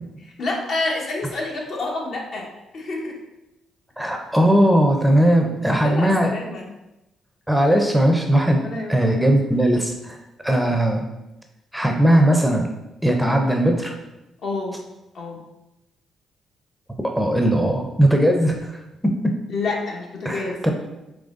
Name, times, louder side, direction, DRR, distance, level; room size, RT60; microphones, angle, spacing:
voice 1, 0.4-3.2 5.7-6.7 8.6-9.3 14.4-14.8 15.1-15.4 19.5-20.6, left 3 dB, 60° left, -1 dB, 1.0 m, -28 dB
voice 2, 4.0-6.3 7.5-8.6 8.9-10.2 10.4-11.0 11.7-12.7 13.0-13.9 17.1-19.3 20.2-20.7, right 1 dB, 5° right, 2 dB, 0.5 m, -18 dB
3.9 x 3.1 x 3.7 m, 0.95 s
cardioid pair, 90°, 0 cm